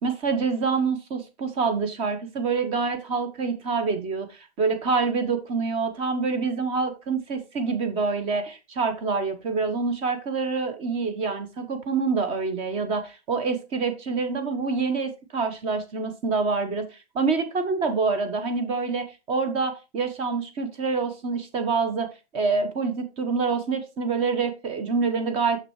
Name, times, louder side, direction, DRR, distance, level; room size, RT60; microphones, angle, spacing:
voice 1, 0.0-4.3 4.6-22.1 22.3-25.6, right 4 dB, 20° right, 8 dB, 0.8 m, -26 dB
6.3 x 6.1 x 3.0 m, 0.27 s
hypercardioid pair, 145°, 33 cm